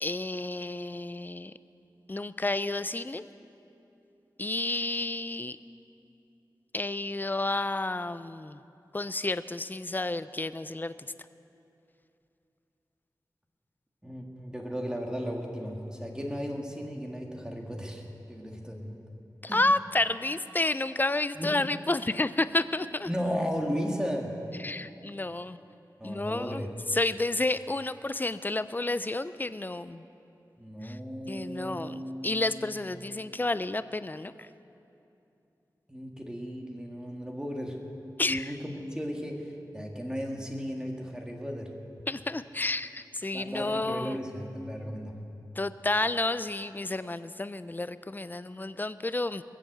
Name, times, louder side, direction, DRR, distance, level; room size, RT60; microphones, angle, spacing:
voice 1, 0.0-1.5 2.1-3.2 4.4-5.6 6.7-8.6 8.9-10.9 19.4-23.1 24.6-25.6 26.0-26.7 26.9-30.0 30.8-31.0 31.3-34.3 38.2-38.5 42.1-44.2 45.6-49.4, left 2 dB, 25° left, 14 dB, 0.4 m, -30 dB
voice 2, 14.0-18.0 18.3-19.0 19.5-19.6 21.4-21.5 23.1-24.3 26.0-26.7 30.6-32.8 35.9-37.8 38.3-41.7 43.3-45.1, equal, 10° right, 1 dB, 1.8 m, -35 dB
20.5 x 7.6 x 7.9 m, 2.7 s
wide cardioid pair, 80°, 7 cm